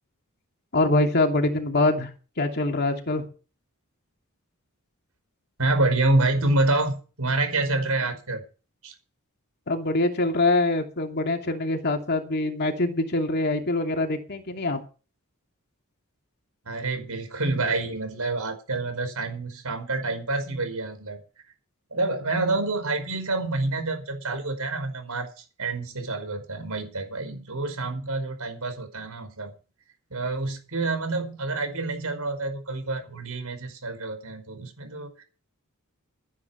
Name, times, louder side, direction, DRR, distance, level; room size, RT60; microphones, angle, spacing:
voice 1, 0.7-2.1 2.4-3.3 9.7-14.8, left 2 dB, 50° left, 3 dB, 2.7 m, -24 dB
voice 2, 5.6-8.5 8.8-8.9 16.6-21.2 21.9-29.5 30.1-35.2, right 2 dB, 85° right, 7 dB, 5.1 m, -27 dB
13.0 x 10.5 x 5.9 m, 0.35 s
head